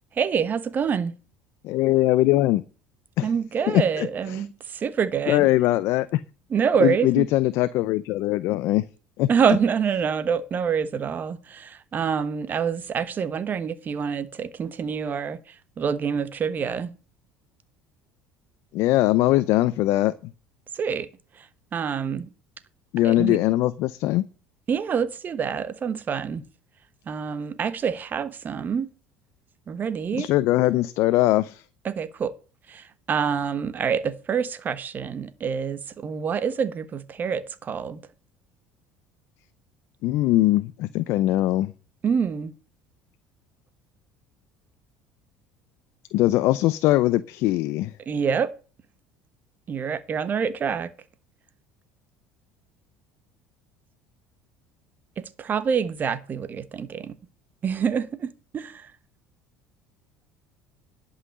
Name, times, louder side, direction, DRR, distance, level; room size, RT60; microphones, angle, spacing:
voice 1, 0.1-1.1 3.2-5.5 6.5-7.3 9.3-16.9 20.7-21.1 21.4-21.5 21.7-22.3 23.0-23.4 24.7-26.4 27.1-28.9 29.7-30.3 31.8-32.3 32.7-38.0 42.0-42.5 48.1-48.5 49.7-50.9 55.4-57.1 57.6-58.9, right 7 dB, 40° right, 1.2 m, -26 dB
voice 2, 1.6-2.6 3.2-3.3 3.7-4.1 4.4-4.5 5.3-6.2 6.8-8.8 9.2-9.3 18.7-20.1 22.9-24.2 30.2-31.6 40.0-41.7 46.1-47.9, left 16 dB, 70° left, 0.6 m, -21 dB
11.0 x 5.7 x 7.8 m
supercardioid pair, 95°, 5 cm